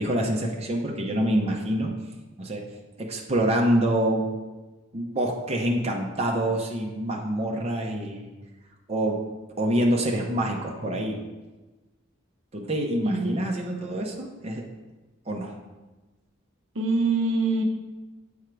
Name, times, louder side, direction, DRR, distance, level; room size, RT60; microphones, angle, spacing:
voice 1, 0.0-1.9 2.4-2.6 3.0-4.2 4.9-8.3 8.9-9.2 9.6-11.2 12.5-14.6 15.3-15.5, right 1 dB, 30° right, 0 dB, 0.7 m, -26 dB
voice 2, 13.0-13.3 16.7-17.6, right 3 dB, 65° right, 3 dB, 0.7 m, -24 dB
7.7 x 3.6 x 4.6 m, 1.2 s
head